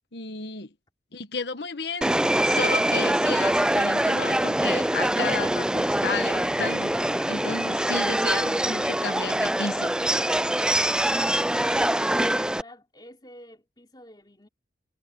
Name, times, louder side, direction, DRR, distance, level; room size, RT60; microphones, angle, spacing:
voice 1, 0.1-0.7 1.1-10.0, left 4 dB, 70° left, 1.4 m, -33 dB
Subway metro underground, 2.0-12.6, right 1 dB, 5° right, 0.4 m, -24 dB
voice 2, 11.5-14.5, left 1 dB, 25° left, 3.3 m, -47 dB
head